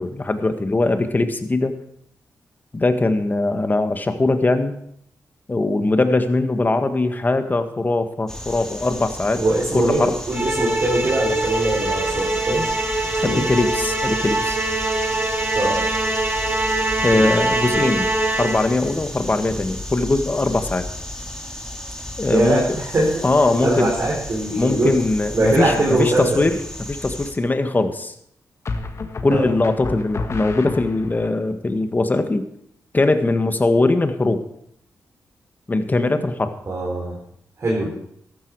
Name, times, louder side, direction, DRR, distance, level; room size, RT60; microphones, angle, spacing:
voice 1, 0.0-1.8 2.7-4.8 5.5-9.4 9.7-10.2 13.2-14.6 17.0-18.1 18.4-20.8 22.2-22.8 23.2-23.9 24.6-26.6 26.9-28.1 29.2-32.5 32.9-34.4 35.7-36.5, left 2 dB, 30° left, 8 dB, 1.6 m, -21 dB
sound 1, 8.3-27.3, left 1 dB, 10° left, 3.1 m, -34 dB
voice 2, 9.3-12.8 13.1-13.4 15.5-15.8 17.1-17.2 22.3-23.3 23.6-25.0 25.3-26.5 29.3-29.5 36.7-37.2 37.6-37.9, right 1 dB, 45° right, -4 dB, 4.2 m, -22 dB
Musical instrument, 10.3-18.8, right 2 dB, 25° right, 1.9 m, -23 dB
sound 2, 26.0-26.5 28.7-31.3, left 3 dB, 50° left, 1.5 m, -30 dB
13.5 x 12.0 x 4.7 m, 0.71 s
cardioid pair, 70°, 6 cm